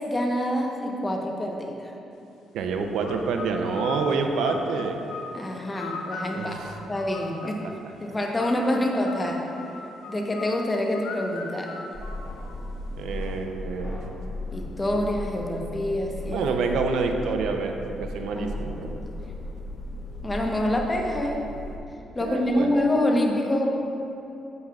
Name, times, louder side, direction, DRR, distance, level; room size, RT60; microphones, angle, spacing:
voice 1, 0.1-1.9 5.3-7.6 8.0-9.4 10.1-11.8 14.5-16.5 18.3-19.1 20.2-21.4 22.1-23.7, left 1 dB, 20° left, 1 dB, 1.0 m, -26 dB
voice 2, 2.5-5.0 6.3-6.8 7.6-7.7 13.0-14.1 16.3-19.0 22.2-22.7, right 4 dB, 80° right, 4 dB, 0.6 m, -28 dB
sound 1, 3.0-7.7 8.4-12.8, left 4 dB, 85° left, 0.7 m, -39 dB
sound 2, 11.9-21.8, left 1 dB, 45° left, 1.7 m, -36 dB
9.5 x 7.8 x 2.4 m, 2.8 s
cardioid pair, 90°, 0 cm